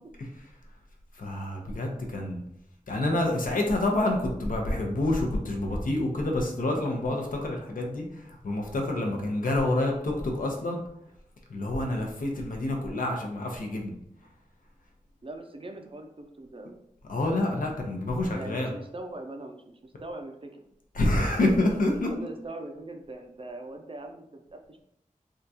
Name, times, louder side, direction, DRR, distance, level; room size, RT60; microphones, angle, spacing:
voice 1, 1.1-2.4 2.9-10.8 11.5-13.9 17.1-18.7 20.9-22.1, left 1 dB, 80° left, 1 dB, 0.6 m, -27 dB
voice 2, 15.2-16.8 18.2-20.6 21.3-24.8, right 2 dB, 40° right, 4 dB, 0.4 m, -42 dB
3.6 x 2.3 x 2.7 m, 0.75 s
wide cardioid pair, 60°, 14 cm